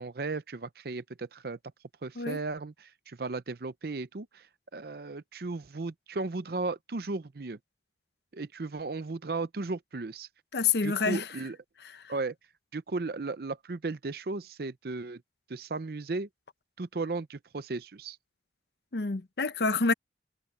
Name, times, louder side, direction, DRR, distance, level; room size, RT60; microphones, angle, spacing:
voice 1, 0.0-1.6 2.0-4.5 4.7-7.6 8.3-10.3 10.8-11.6 12.1-12.3 12.7-15.2 15.5-16.3 16.8-18.2, right 3 dB, 60° right, 0.6 m, -35 dB
voice 2, 10.5-11.2 18.9-19.9, left 4 dB, 65° left, 0.8 m, -27 dB
head